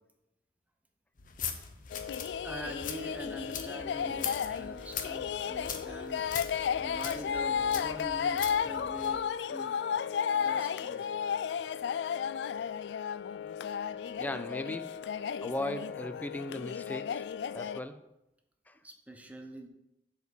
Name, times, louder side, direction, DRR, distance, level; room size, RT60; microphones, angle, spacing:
sound 1, 1.2-9.2, left 7 dB, 50° left, 0.9 m, -42 dB
sound 2, 1.9-17.8, left 7 dB, 75° left, 0.3 m, -33 dB
voice 1, 2.4-9.8 10.3-11.1 18.8-19.7, right 1 dB, 10° right, 0.9 m, -44 dB
voice 2, 14.2-15.0 15.4-17.3 17.5-18.1 18.7-18.8, left 1 dB, 10° left, 0.5 m, -37 dB
7.9 x 5.0 x 7.1 m
head